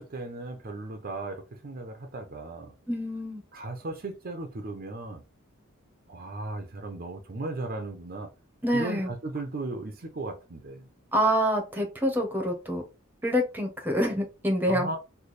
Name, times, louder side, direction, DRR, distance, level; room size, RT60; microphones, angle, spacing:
voice 1, 0.0-2.7 3.5-5.2 6.1-8.3 8.7-10.9 14.7-15.0, right 2 dB, 45° right, 0.6 m, -36 dB
voice 2, 2.9-3.4 8.6-9.1 11.1-12.8 13.2-14.9, equal, 10° right, 0.8 m, -26 dB
3.2 x 2.2 x 4.1 m
head